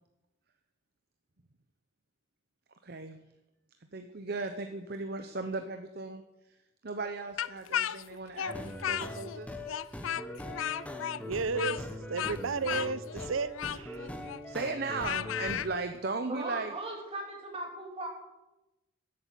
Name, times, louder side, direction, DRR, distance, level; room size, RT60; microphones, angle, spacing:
voice 1, 2.8-3.2 3.9-6.2 6.8-9.6 14.5-16.7, right 3 dB, 50° right, 7 dB, 0.9 m, -36 dB
Speech, 7.4-9.4 9.7-15.7, left 10 dB, 80° left, 0.4 m, -35 dB
sound 1, 8.5-15.7, left 1 dB, 5° left, 1.1 m, -42 dB
voice 2, 11.2-14.0, right 4 dB, 85° right, 16 dB, 0.7 m, -33 dB
voice 3, 16.3-18.1, right 2 dB, 30° right, 1 dB, 3.1 m, -38 dB
13.5 x 8.7 x 8.4 m, 0.98 s
head